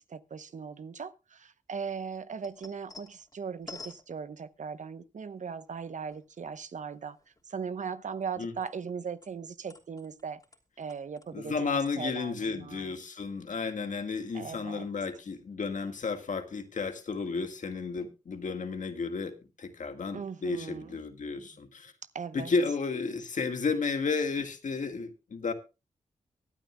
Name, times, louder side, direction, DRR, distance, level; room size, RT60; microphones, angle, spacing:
voice 1, 0.0-7.2 7.5-10.4 10.8-12.9 14.3-14.9 20.1-21.0 21.4-21.5 22.1-22.5, right 6 dB, 65° right, 0.9 m, -39 dB
sound 1, 2.1-4.8 5.5-6.6 6.9-8.9 9.2-11.5 11.8-11.9, left 3 dB, 25° left, 3.0 m, -51 dB
voice 2, 11.3-21.9 22.3-25.5, left 4 dB, 70° left, 1.8 m, -32 dB
23.5 x 9.1 x 2.3 m
cardioid pair, 45°, 14 cm